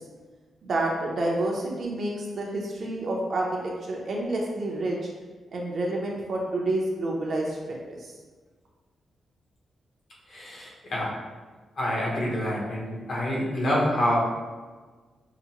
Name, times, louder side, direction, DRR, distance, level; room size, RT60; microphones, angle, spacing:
voice 1, 0.6-5.0 5.5-7.8, right 2 dB, 45° right, -2 dB, 0.7 m, -28 dB
voice 2, 10.3-11.1 11.8-14.2, left 1 dB, 45° left, -4 dB, 1.0 m, -27 dB
5.8 x 2.2 x 2.9 m, 1.4 s
wide cardioid pair, 175°, 0 cm